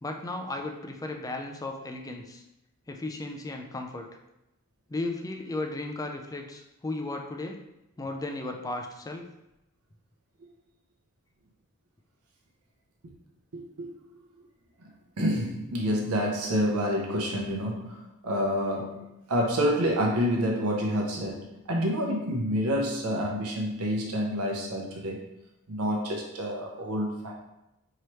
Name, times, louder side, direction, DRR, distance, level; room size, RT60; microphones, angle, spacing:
voice 1, 0.0-2.4 2.9-4.1 4.9-7.6 8.0-9.3, left 2 dB, 15° left, 3 dB, 0.4 m, -35 dB
voice 2, 13.5-13.9 15.2-25.3 25.7-27.3, equal, 80° right, 0 dB, 0.7 m, -28 dB
4.7 x 3.0 x 3.0 m, 0.91 s
head